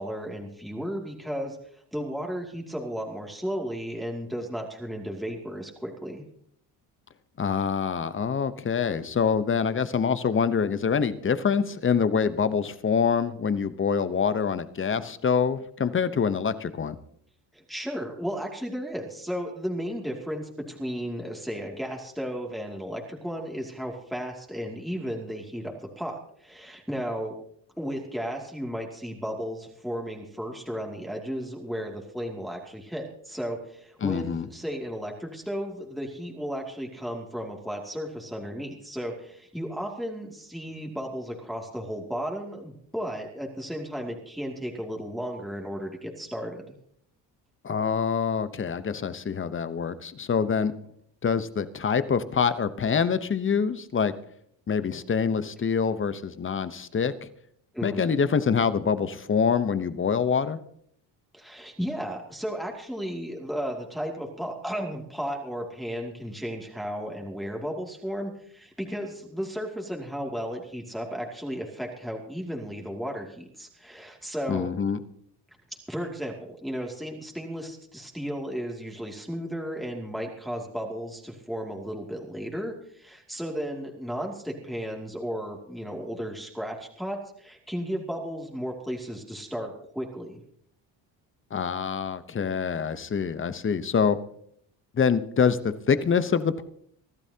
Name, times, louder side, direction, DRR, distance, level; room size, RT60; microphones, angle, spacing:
voice 1, 0.0-1.6 1.9-6.2 17.5-27.4 27.8-46.8 57.7-58.1 61.3-74.7 75.9-90.4, equal, ahead, 0 dB, 2.5 m, -34 dB
voice 2, 7.4-17.0 34.0-34.5 47.6-50.7 51.2-54.1 54.7-57.3 57.8-60.6 74.5-75.0 91.5-94.2 94.9-96.6, left 6 dB, 30° left, 13 dB, 0.9 m, -25 dB
25.0 x 12.0 x 2.9 m, 0.67 s
cardioid pair, 95°, 43 cm